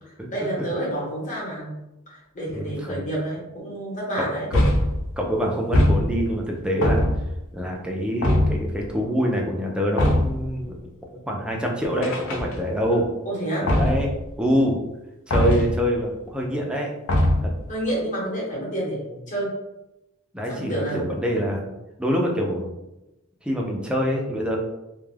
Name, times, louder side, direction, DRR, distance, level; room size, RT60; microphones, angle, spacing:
voice 1, 0.3-1.7 2.1-4.5 13.2-13.7 17.7-19.5 20.5-21.0, right 1 dB, 35° left, -5 dB, 1.0 m, -29 dB
voice 2, 2.5-3.0 4.2-4.6 5.2-7.1 7.5-10.8 11.3-13.1 13.8-14.1 14.4-14.8 15.3-16.9 17.4-17.5 20.3-21.7 22.0-22.7 23.4-24.6, equal, 5° right, -1 dB, 0.4 m, -25 dB
sound 1, 4.5-5.1 5.7-6.4 6.8-7.4 8.2-8.7 10.0-10.5 12.0-12.8 13.7-14.2 15.3-15.8 17.1-17.6, left 1 dB, 70° left, 0.5 m, -21 dB
2.2 x 2.1 x 3.2 m, 0.95 s
head